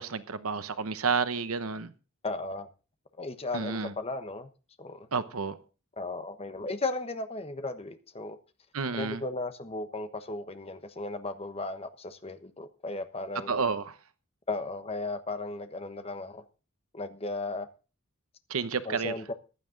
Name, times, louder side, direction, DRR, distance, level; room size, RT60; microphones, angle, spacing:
voice 1, 0.0-1.9 3.5-3.9 5.1-5.6 8.7-9.2 13.5-14.0 18.5-19.1, right 5 dB, 90° right, 0.9 m, -30 dB
voice 2, 2.2-2.7 3.2-4.5 4.8-5.1 6.0-8.4 8.9-13.6 14.5-16.4 16.9-17.7 18.8-19.3, left 2 dB, 30° left, 1.1 m, -35 dB
15.0 x 11.0 x 3.9 m
head